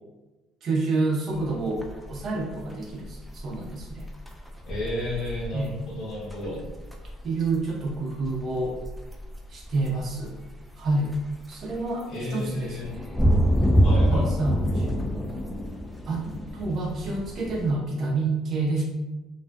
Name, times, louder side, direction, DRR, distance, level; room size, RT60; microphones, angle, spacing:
voice 1, 0.6-4.1 5.5-5.8 7.2-8.8 9.5-10.4 10.8-11.1 11.5-13.3 14.1-15.1 16.0-16.3 16.5-18.8, right 3 dB, 50° right, -3 dB, 0.8 m, -28 dB
sound 1, 1.3-17.7, equal, ahead, 0.4 m, -28 dB
voice 2, 4.7-6.6 12.1-12.9 13.8-14.4, left 1 dB, 60° left, -7 dB, 0.7 m, -32 dB
2.3 x 2.3 x 2.2 m, 1.1 s
supercardioid pair, 90°, 0 cm